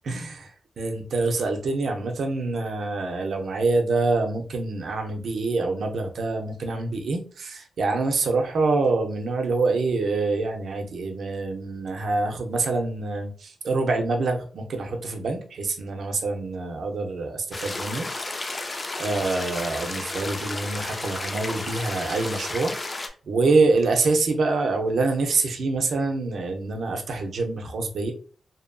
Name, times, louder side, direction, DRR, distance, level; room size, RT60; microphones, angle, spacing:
voice 1, 0.8-28.1, right 3 dB, 65° right, 3 dB, 0.5 m, -26 dB
sound 1, 17.5-23.1, left 2 dB, 30° left, 0.3 m, -32 dB
2.7 x 2.4 x 2.2 m, 0.42 s
wide cardioid pair, 115°, 0 cm